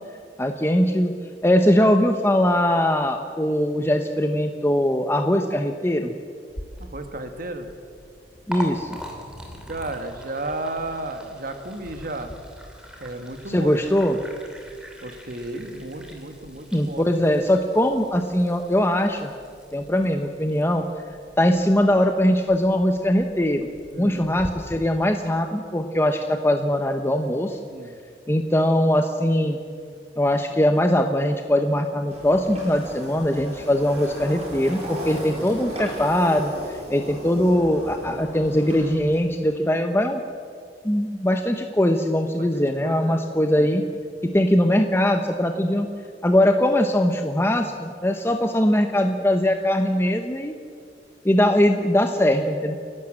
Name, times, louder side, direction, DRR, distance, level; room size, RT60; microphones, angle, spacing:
voice 1, 0.4-1.1 1.4-6.1 8.5-9.0 13.5-14.2 16.7-19.3 19.7-20.8 21.4-23.7 24.0-27.6 28.3-29.6 30.2-40.2 40.8-43.8 44.2-45.9 46.2-50.5 51.2-52.8, left 1 dB, 15° left, 5 dB, 0.8 m, -21 dB
Liquid, 6.5-24.5, equal, 5° right, 2.8 m, -42 dB
voice 2, 6.8-7.7 9.7-12.3 13.0-13.8 14.1-14.2 15.0-17.1 23.9-24.3 27.7-27.9 35.3-35.5 38.0-38.3 42.4-43.2 43.5-43.7, right 2 dB, 50° right, 6 dB, 1.9 m, -34 dB
sound 1, 32.1-39.2, equal, 35° right, 7.3 m, -36 dB
29.5 x 12.0 x 7.6 m, 2.2 s
head